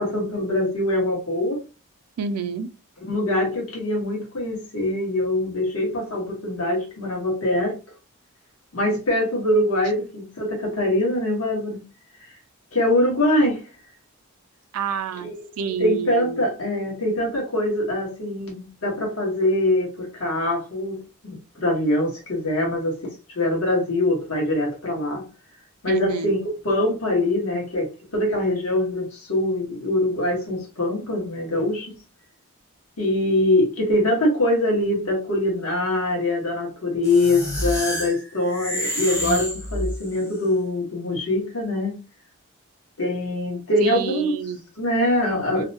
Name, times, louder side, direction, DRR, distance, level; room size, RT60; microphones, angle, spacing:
voice 1, 0.0-1.6 3.1-7.7 8.7-11.8 12.7-13.6 15.2-15.3 15.8-25.2 25.8-31.9 33.0-41.9 43.0-44.3 44.8-45.6, left 1 dB, 80° left, 1.3 m, -23 dB
voice 2, 2.2-2.7 14.7-16.4 25.9-26.4 43.8-44.6 45.2-45.6, right 6 dB, 90° right, 0.4 m, -29 dB
sound 1, 37.0-40.3, equal, 15° left, 0.5 m, -28 dB
2.7 x 2.1 x 2.7 m
head